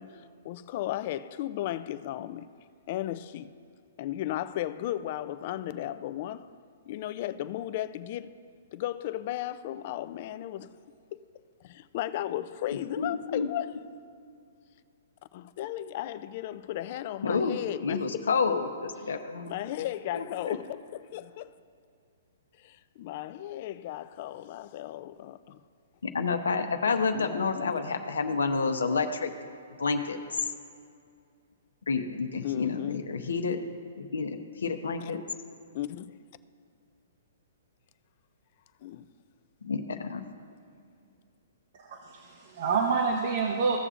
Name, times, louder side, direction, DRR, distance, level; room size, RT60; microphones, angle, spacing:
voice 1, 0.0-2.5 2.9-3.5 4.0-6.5 6.9-8.3 8.7-10.7 11.6-13.9 15.3-18.0 19.5-21.5 22.6-25.6 27.1-27.7 32.4-33.0 35.7-36.1 38.8-39.1, left 13 dB, 45° left, 0.4 m, -35 dB
voice 2, 13.0-13.5 17.2-19.5 20.1-20.6 26.0-29.3 29.8-30.2 31.9-33.6 34.0-35.2 39.6-40.2, left 4 dB, 90° left, 0.9 m, -29 dB
voice 3, 41.7-43.8, right 5 dB, 55° right, 1.0 m, -28 dB
16.0 x 6.7 x 2.5 m
hypercardioid pair, 145°, 0 cm